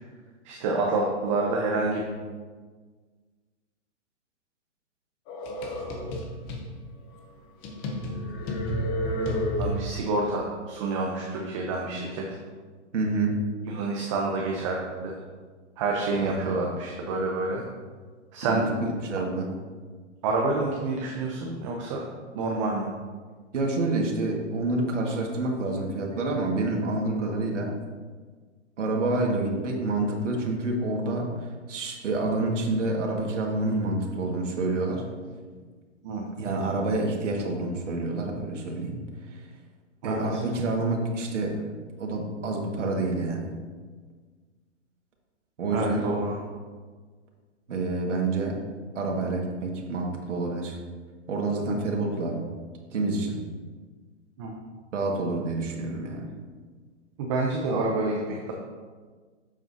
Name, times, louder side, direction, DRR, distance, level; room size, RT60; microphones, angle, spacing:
voice 1, 0.4-2.0 9.6-12.4 13.6-15.1 15.8-17.6 18.3-18.6 20.2-22.0 22.3-22.9 36.0-36.3 40.0-40.4 45.7-46.4 54.4-54.5 57.2-58.5, right 3 dB, 25° right, 0 dB, 0.7 m, -28 dB
sound 1, 5.3-6.7 7.2-7.3 7.6-10.1, equal, 15° left, 0.6 m, -30 dB
voice 2, 12.9-13.4 16.2-16.6 18.5-19.5 23.5-27.7 28.8-35.0 36.4-39.0 39.3-39.4 40.0-41.7 42.0-43.5 45.6-46.1 47.7-48.6 48.9-50.8 51.3-52.5 52.9-53.4 54.9-56.3, right 2 dB, 75° right, 0 dB, 1.8 m, -28 dB
8.8 x 7.4 x 2.7 m, 1.5 s
hypercardioid pair, 155°, 36 cm